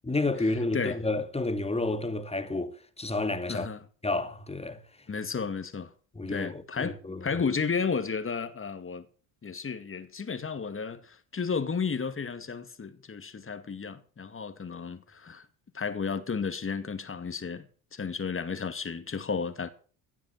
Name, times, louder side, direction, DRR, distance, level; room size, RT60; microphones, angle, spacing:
voice 1, 0.0-3.7 4.0-4.8 6.1-7.2, left 2 dB, 15° left, 2.3 m, -30 dB
voice 2, 0.6-1.0 3.5-3.8 5.1-5.9 6.3-9.1 9.4-15.5 15.7-17.7 17.9-19.7, left 5 dB, 30° left, 2.3 m, -33 dB
16.5 x 7.2 x 7.9 m
supercardioid pair, 70°, 42 cm